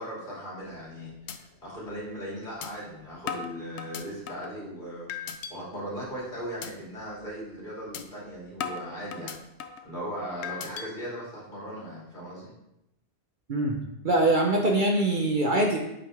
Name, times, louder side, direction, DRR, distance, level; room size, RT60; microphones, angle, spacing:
voice 1, 0.0-9.3 9.8-12.5, equal, 40° left, -7 dB, 3.0 m, -38 dB
sound 1, 0.6-0.9 1.3-1.4 1.8-1.9 2.6-2.7 3.3-4.5 5.1-5.5 6.0-6.2 6.6-6.7 7.1-7.3 7.9-8.0 8.6-9.9 10.4-10.9, left 7 dB, 70° left, 0.9 m, -37 dB
voice 2, 14.0-15.8, right 2 dB, 45° right, 0 dB, 1.0 m, -23 dB
8.6 x 5.5 x 3.4 m, 0.86 s
omnidirectional pair, 1.2 m